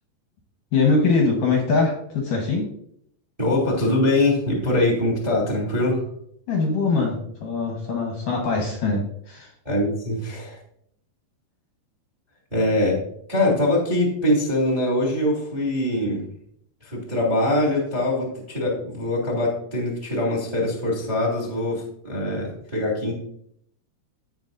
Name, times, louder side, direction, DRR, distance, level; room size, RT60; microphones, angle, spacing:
voice 1, 0.7-2.7 6.5-7.2 7.4-9.5, left 4 dB, 70° left, 1 dB, 2.1 m, -22 dB
voice 2, 3.4-6.0 9.6-10.6 12.5-13.0 13.3-16.2 16.8-23.1, left 1 dB, 15° right, -3 dB, 1.3 m, -23 dB
16.5 x 5.7 x 2.7 m, 0.68 s
omnidirectional pair, 5.4 m